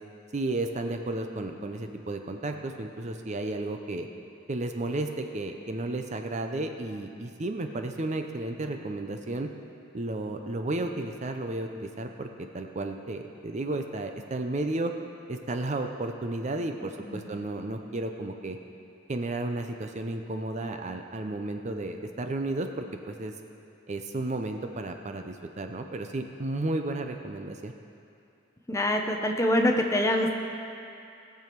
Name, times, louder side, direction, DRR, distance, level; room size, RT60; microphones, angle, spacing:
voice 1, 0.3-4.1 4.5-9.5 9.9-12.3 12.5-14.9 15.3-18.6 19.1-23.3 23.9-27.7, right 2 dB, 35° right, 5 dB, 0.6 m, -33 dB
voice 2, 28.7-30.3, left 1 dB, 15° left, 2 dB, 0.8 m, -25 dB
18.5 x 7.0 x 4.6 m, 2.6 s
head